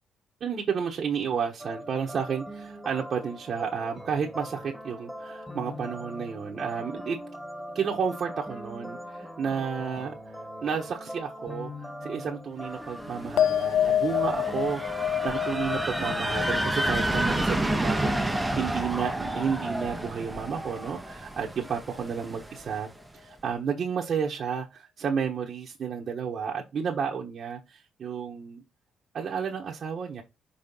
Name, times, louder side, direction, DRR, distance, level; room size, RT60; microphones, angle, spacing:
voice 1, 0.4-7.2 7.7-10.1 10.6-22.9 23.1-28.6 29.1-30.2, right 6 dB, 55° right, 1.3 m, -31 dB
sound 1, 1.6-15.5, equal, 10° left, 1.8 m, -41 dB
sound 2, 13.0-22.8, right 1 dB, 10° right, 0.9 m, -30 dB
sound 3, 13.4-20.1 20.3-21.0, left 10 dB, 75° left, 0.5 m, -30 dB
5.8 x 3.6 x 5.3 m
cardioid pair, 90°, 0 cm